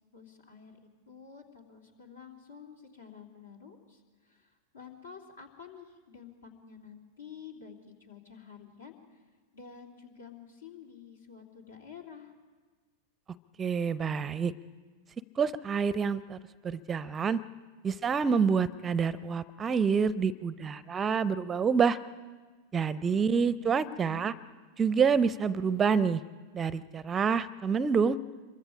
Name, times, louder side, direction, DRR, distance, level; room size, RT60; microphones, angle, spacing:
voice 1, 0.1-0.8 1.1-9.2 9.5-12.3 23.1-24.3, left 7 dB, 70° left, 2 dB, 3.0 m, -50 dB
voice 2, 13.6-14.5 15.4-16.4 16.6-17.4 17.8-22.0 22.7-24.3 24.8-26.2 26.5-28.2, right 6 dB, 20° right, 18 dB, 0.6 m, -27 dB
26.5 x 23.0 x 5.0 m, 1.4 s
figure-of-eight pair, 90°, 0 cm